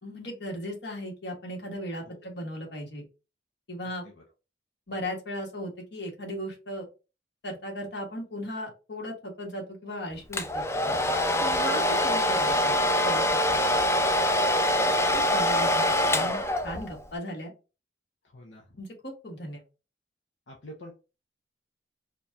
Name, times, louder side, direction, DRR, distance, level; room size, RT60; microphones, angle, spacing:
voice 1, 0.0-3.0 3.7-4.1 4.9-6.8 7.4-10.6 11.4-13.2 13.5-13.6 15.1-17.5 18.8-19.6, equal, 65° left, 0 dB, 1.5 m, -36 dB
Domestic sounds home sounds, 10.3-17.0, left 1 dB, 15° left, 0.3 m, -24 dB
voice 2, 18.2-18.7 20.5-20.9, equal, 85° left, 0 dB, 0.8 m, -48 dB
4.4 x 2.4 x 2.7 m, 0.30 s
head